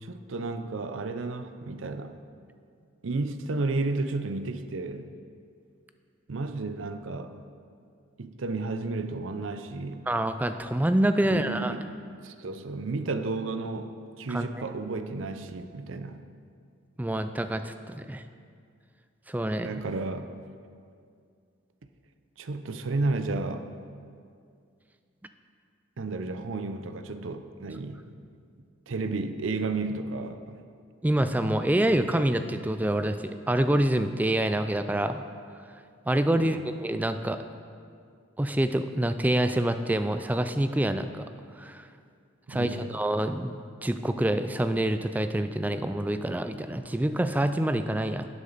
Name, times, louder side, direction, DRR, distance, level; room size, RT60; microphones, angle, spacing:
voice 1, 0.0-2.1 3.0-5.0 6.3-7.4 8.2-10.1 11.3-11.8 12.2-16.2 19.6-20.3 22.4-23.7 26.0-28.0 28.9-30.6 36.3-36.5 42.5-42.9, right 3 dB, 80° right, 9 dB, 0.6 m, -32 dB
voice 2, 10.1-11.8 14.3-14.5 17.0-18.2 19.3-19.8 31.0-35.2 36.1-37.4 38.4-41.3 41.6-41.8 42.5-48.3, right 1 dB, 10° right, 9 dB, 0.3 m, -26 dB
12.0 x 8.2 x 4.0 m, 2.3 s
head